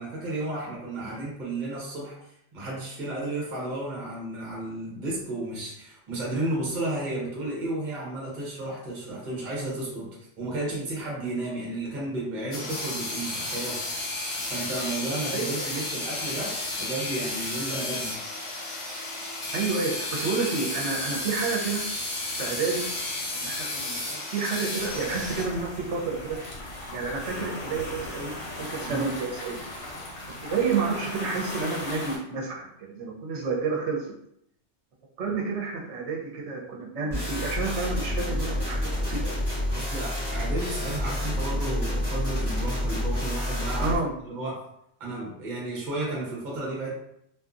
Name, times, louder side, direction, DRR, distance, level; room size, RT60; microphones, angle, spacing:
voice 1, 0.0-2.2 2.5-10.1 10.4-13.8 14.5-18.2 28.9-29.1 39.7-44.0 44.3-44.6 45.0-46.9, right 2 dB, 45° right, -4 dB, 0.9 m, -33 dB
sound 1, 12.5-25.4, left 2 dB, 35° left, 0.5 m, -32 dB
voice 2, 15.3-15.7 19.5-21.8 22.4-22.9 23.3-26.4 26.9-28.4 28.7-29.6 30.4-34.1 35.2-39.4 43.8-44.1, right 4 dB, 70° right, -1 dB, 1.0 m, -30 dB
sound 2, 24.8-32.2, left 1 dB, 65° left, 0.9 m, -37 dB
sound 3, 37.1-44.0, left 1 dB, 20° left, 0.9 m, -28 dB
2.6 x 2.4 x 2.4 m, 0.73 s
omnidirectional pair, 1.3 m